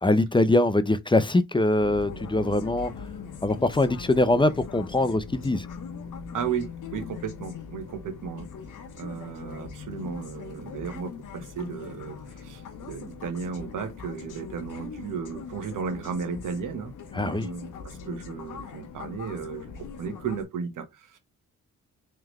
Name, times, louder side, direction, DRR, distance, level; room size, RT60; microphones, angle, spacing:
voice 1, 0.0-2.9 3.4-5.7 17.1-17.5, left 2 dB, 15° left, 0.7 m, -23 dB
sound 1, 1.8-20.4, left 6 dB, 70° left, 1.1 m, -41 dB
voice 2, 6.3-8.5 9.0-21.2, right 6 dB, 70° right, 1.3 m, -35 dB
3.7 x 3.3 x 3.1 m
supercardioid pair, 55°, 32 cm